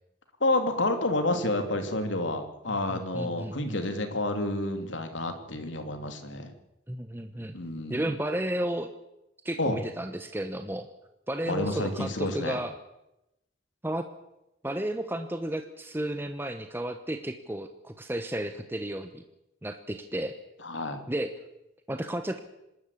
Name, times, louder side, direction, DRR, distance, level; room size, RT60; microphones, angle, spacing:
voice 1, 0.4-6.5 7.5-8.0 9.6-9.8 11.5-12.6 20.6-21.0, left 2 dB, 85° left, 6 dB, 3.0 m, -29 dB
voice 2, 2.7-3.8 6.9-7.6 7.9-8.9 9.4-10.9 11.3-12.7 13.8-14.0 14.6-19.2 19.6-20.3 21.1-21.3 21.9-22.4, right 1 dB, 10° right, 7 dB, 1.0 m, -33 dB
26.0 x 13.0 x 8.4 m, 0.91 s
head